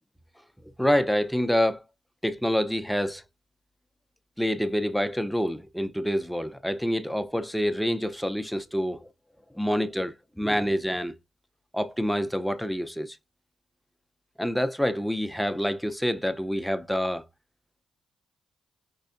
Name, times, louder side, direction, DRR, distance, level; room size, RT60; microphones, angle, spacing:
voice 1, 0.8-1.8 2.2-3.2 4.4-9.1 9.5-11.1 11.7-13.2 14.4-17.2, equal, ahead, 0.6 m, -27 dB
5.4 x 3.3 x 2.5 m
cardioid pair, 70°, 0 cm